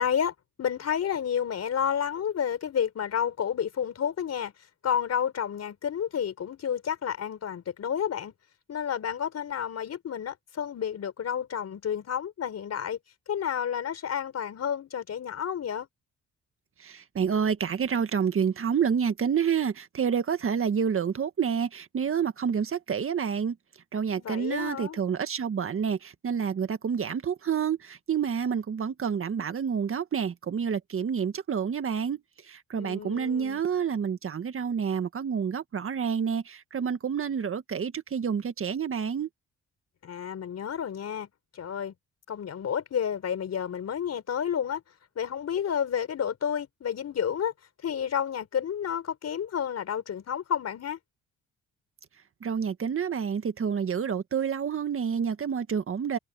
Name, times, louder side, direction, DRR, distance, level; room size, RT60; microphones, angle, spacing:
voice 1, 0.0-4.5 4.8-8.3 8.7-13.0 13.3-15.9 24.2-25.0 32.7-33.6 40.0-41.3 41.5-41.9 42.3-44.8 45.1-47.5 47.8-51.0, left 8 dB, 55° left, 4.9 m, -30 dB
voice 2, 16.8-23.6 23.9-32.2 32.5-39.3 52.4-56.2, right 7 dB, 45° right, 1.7 m, -28 dB
cardioid pair, 90°, 30 cm